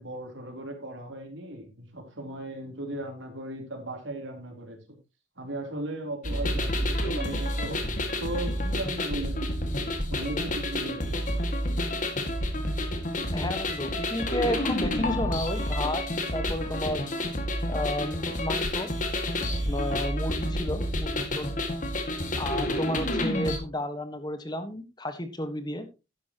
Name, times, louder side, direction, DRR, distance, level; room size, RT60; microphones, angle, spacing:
voice 1, 0.0-5.0 5.4-11.5, right 1 dB, 85° right, 3 dB, 3.6 m, -37 dB
sound 1, 6.2-23.6, left 1 dB, 45° left, 2.0 m, -29 dB
voice 2, 13.3-16.0 16.3-17.1 17.7-18.9 19.7-21.5 22.4-25.9, left 1 dB, 20° left, 9 dB, 1.4 m, -32 dB
12.0 x 10.5 x 3.0 m, 0.27 s
head